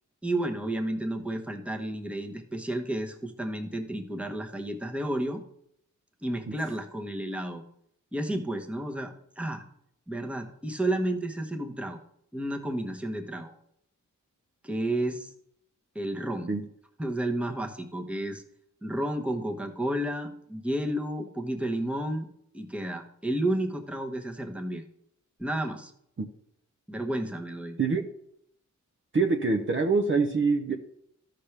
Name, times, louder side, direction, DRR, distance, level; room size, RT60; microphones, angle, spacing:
voice 1, 0.2-5.4 6.2-7.6 8.1-9.6 10.1-12.0 12.3-13.5 14.6-15.3 15.9-16.5 17.0-18.4 18.8-22.3 22.5-24.8 25.4-25.9 26.9-27.8, right 1 dB, 5° right, 3 dB, 1.0 m, -31 dB
voice 2, 29.1-30.7, right 4 dB, 40° right, 3 dB, 0.7 m, -25 dB
13.0 x 5.9 x 3.3 m, 0.72 s
wide cardioid pair, 80°, 31 cm